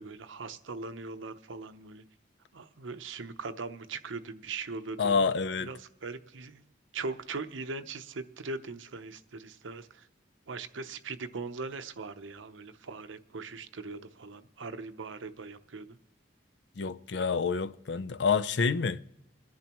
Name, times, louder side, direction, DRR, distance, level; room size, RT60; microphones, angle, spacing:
voice 1, 0.0-2.0 2.5-5.3 5.7-6.6 6.9-10.1 10.5-16.0, right 4 dB, 90° right, 0.7 m, -40 dB
voice 2, 5.0-5.7 16.8-19.0, left 5 dB, 65° left, 0.5 m, -28 dB
28.0 x 10.5 x 3.0 m
head